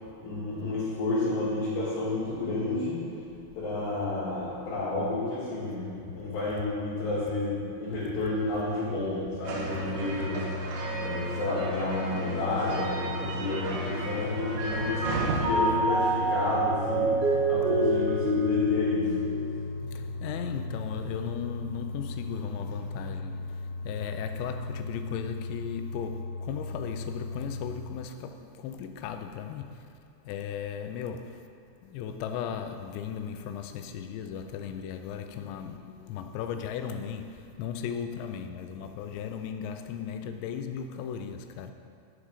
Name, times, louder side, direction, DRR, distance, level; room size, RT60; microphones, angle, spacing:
voice 1, 0.0-3.0 3.5-10.5 10.9-19.2, left 2 dB, 70° left, 4.8 m, -31 dB
sound 1, 9.4-27.7, left 2 dB, 55° left, 3.4 m, -37 dB
sound 2, 9.4-15.4, right 3 dB, 85° right, 3.6 m, -36 dB
Mallet percussion, 12.9-14.2 14.6-20.0, right 1 dB, 70° right, 2.9 m, -28 dB
voice 2, 19.9-29.8 30.3-31.4 31.8-41.7, left 8 dB, 90° left, 2.9 m, -36 dB
12.0 x 7.4 x 5.0 m
omnidirectional pair, 5.0 m